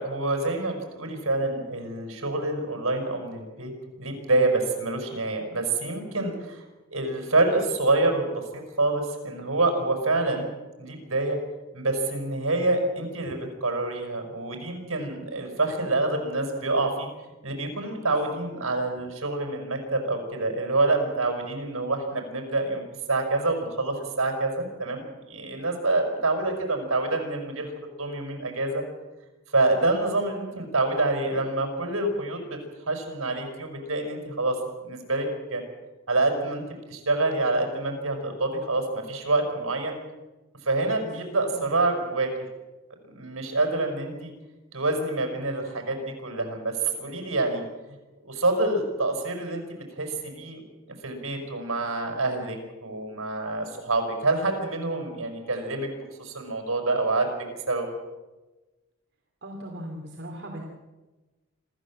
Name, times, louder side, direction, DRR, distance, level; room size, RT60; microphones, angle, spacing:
voice 1, 0.0-3.7 4.0-6.6 6.9-10.5 10.8-11.4 11.7-17.1 17.4-27.7 28.0-28.8 29.5-32.6 32.9-35.6 36.1-36.6 36.9-40.0 40.6-42.3 43.1-44.3 44.7-47.6 48.2-50.6 51.0-55.9 56.2-57.4 57.7-57.9, right 2 dB, 65° right, 4 dB, 5.8 m, -27 dB
voice 2, 41.0-41.3 41.5-41.7 59.4-60.6, equal, 50° right, 0 dB, 2.8 m, -39 dB
26.5 x 14.0 x 7.6 m, 1.1 s
head